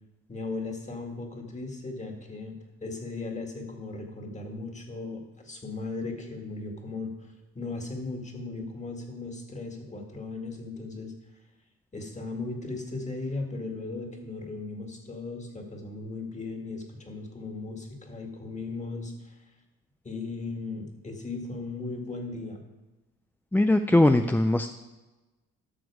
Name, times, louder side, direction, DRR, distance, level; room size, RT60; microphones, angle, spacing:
voice 1, 0.3-11.1 11.9-19.4 20.0-22.6, left 3 dB, 25° left, 3 dB, 2.1 m, -37 dB
voice 2, 23.5-24.7, left 1 dB, 5° left, 7 dB, 0.4 m, -21 dB
12.5 x 6.2 x 4.9 m, 1.1 s
cardioid pair, 90°, 30 cm